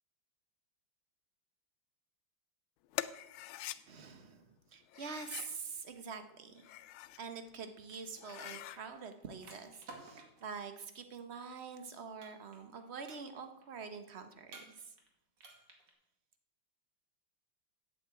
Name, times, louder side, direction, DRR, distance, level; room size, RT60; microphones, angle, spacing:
sound 1, 2.9-3.8 4.9-5.6 6.5-7.2 7.7-7.8 8.2-8.8, left 14 dB, 90° left, 1.4 m, -43 dB
voice 1, 3.9-6.7 7.2-14.9, right 5 dB, 40° right, 8 dB, 1.0 m, -46 dB
sound 2, 7.3-10.5 12.2-12.8 13.0-13.6 14.5-15.1 15.4-15.9, right 3 dB, 60° right, 2.7 m, -54 dB
8.7 x 8.5 x 8.2 m, 0.84 s
omnidirectional pair, 2.2 m